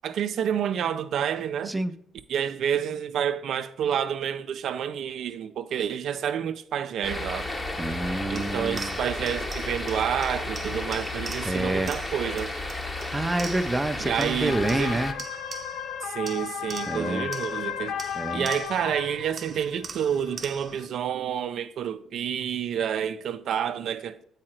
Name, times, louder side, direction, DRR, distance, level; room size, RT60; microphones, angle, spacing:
voice 1, 0.0-1.7 2.3-7.5 8.3-12.5 14.0-15.0 16.0-24.2, right 9 dB, 70° right, 0.4 m, -29 dB
sound 1, 7.0-15.1, left 2 dB, 25° left, 0.9 m, -33 dB
voice 2, 7.8-9.0 11.4-11.9 13.1-15.1 16.9-17.3 18.1-18.5, right 2 dB, 15° right, 0.5 m, -28 dB
sound 2, 8.3-13.9 14.2-15.9 16.3-18.9 19.4-20.9, right 5 dB, 45° right, 0.8 m, -43 dB
sound 3, 14.5-20.9, left 8 dB, 75° left, 0.4 m, -35 dB
7.6 x 4.9 x 4.4 m
cardioid pair, 90°, 0 cm